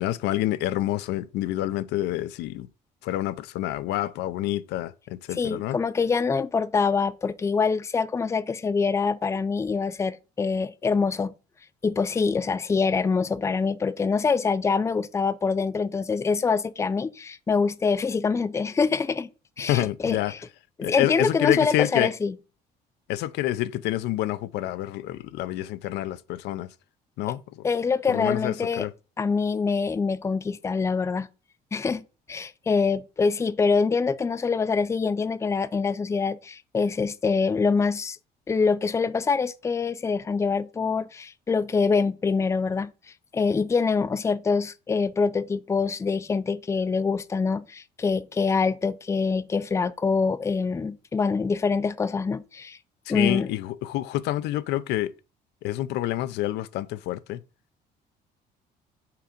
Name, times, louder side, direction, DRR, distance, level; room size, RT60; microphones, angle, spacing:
voice 1, 0.0-2.7 3.0-5.8 19.7-20.3 20.8-22.1 23.1-26.7 27.2-27.7 28.1-28.9 53.1-55.1 55.6-57.4, left 14 dB, 85° left, 0.5 m, -28 dB
voice 2, 5.4-11.3 11.8-19.3 19.6-20.4 20.9-22.3 27.6-28.9 29.2-31.3 31.7-38.2 38.5-42.9 43.3-52.8 53.1-53.5, left 5 dB, 15° left, 0.4 m, -25 dB
5.7 x 3.8 x 5.1 m
cardioid pair, 110°, 17 cm